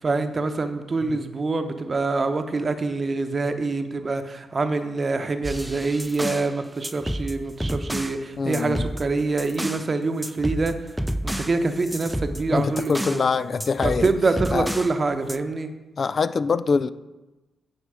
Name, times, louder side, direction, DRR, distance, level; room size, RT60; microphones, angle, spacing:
voice 1, 0.0-10.9 11.2-13.3 13.8-15.7, right 3 dB, 45° right, 8 dB, 0.8 m, -25 dB
sound 1, 5.4-6.5 6.8-8.2 8.5-9.9 10.2-13.3 13.6-15.0 15.3-15.4, equal, 5° right, 0.5 m, -30 dB
voice 2, 8.4-8.8 12.5-14.1 14.5-14.7 16.0-16.9, left 5 dB, 55° left, 14 dB, 0.3 m, -23 dB
9.7 x 4.6 x 4.8 m, 1.1 s
supercardioid pair, 45°, 0 cm